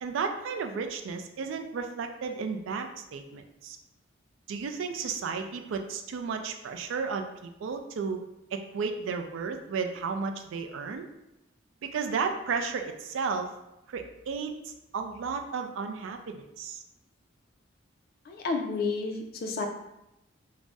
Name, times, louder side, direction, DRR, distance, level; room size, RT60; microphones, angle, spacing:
voice 1, 0.0-3.8 4.5-8.2 8.5-11.1 11.8-13.5 13.9-16.8, right 5 dB, 80° right, 6 dB, 0.3 m, -33 dB
voice 2, 18.3-19.7, left 4 dB, 50° left, 3 dB, 0.4 m, -31 dB
2.6 x 2.0 x 3.4 m, 0.89 s
head